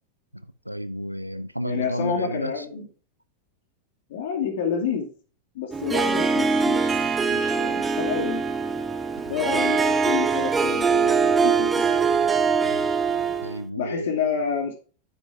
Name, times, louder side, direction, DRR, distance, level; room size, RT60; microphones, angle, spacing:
voice 1, 0.6-2.7 9.3-9.4 12.6-12.9 13.4-14.2, equal, 90° right, 0.6 m, -31 dB
voice 2, 1.6-2.9 4.1-5.1 5.5-8.4 9.3-11.9 13.8-14.7, left 6 dB, 55° left, 2.5 m, -29 dB
Harp, 5.7-13.6, right 5 dB, 15° right, 0.9 m, -23 dB
9.9 x 7.1 x 3.6 m
figure-of-eight pair, 90°, 0 cm